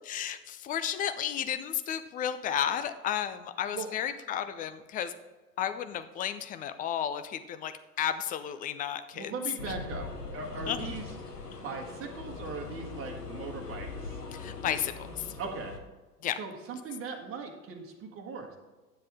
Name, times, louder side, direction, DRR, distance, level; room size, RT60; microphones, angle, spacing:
voice 1, 0.1-5.2 5.6-9.3 9.7-9.8 10.7-10.9 14.3-15.3 16.2-16.4, left 9 dB, 20° left, 11 dB, 0.4 m, -33 dB
voice 2, 9.1-10.1 10.3-11.1 11.6-14.1 15.4-15.8 16.4-18.6, right 4 dB, 30° right, 1 dB, 1.6 m, -39 dB
sound 1, 9.6-15.8, left 4 dB, 85° left, 1.1 m, -41 dB
10.5 x 7.4 x 3.5 m, 1.2 s
figure-of-eight pair, 85°, 46 cm